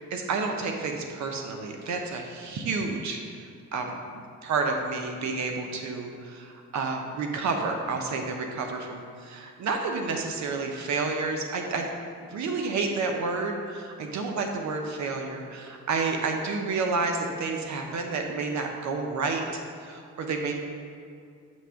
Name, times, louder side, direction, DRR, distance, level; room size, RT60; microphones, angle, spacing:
voice 1, 0.1-3.4 3.7-3.9 4.1-11.9 12.3-20.5, right 4 dB, 65° right, 3 dB, 0.9 m, -30 dB
7.3 x 3.4 x 6.3 m, 2.3 s
cardioid pair, 90°, 30 cm